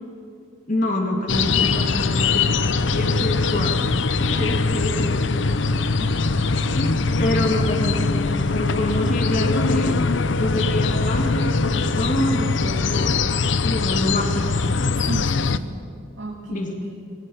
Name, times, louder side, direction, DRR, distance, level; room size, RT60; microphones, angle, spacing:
voice 1, 0.7-3.8 4.2-5.4 6.5-6.9 7.2-8.0 8.3-10.0 10.4-13.1 13.6-14.6 16.5-16.7, left 1 dB, 40° left, 2 dB, 2.4 m, -26 dB
sound 1, 1.3-15.6, left 4 dB, 65° left, 0.7 m, -22 dB
voice 2, 4.3-5.0 6.0-6.2 15.1-15.7 16.2-17.0, right 1 dB, 75° right, -4 dB, 2.7 m, -35 dB
22.5 x 18.0 x 8.5 m, 2.3 s
head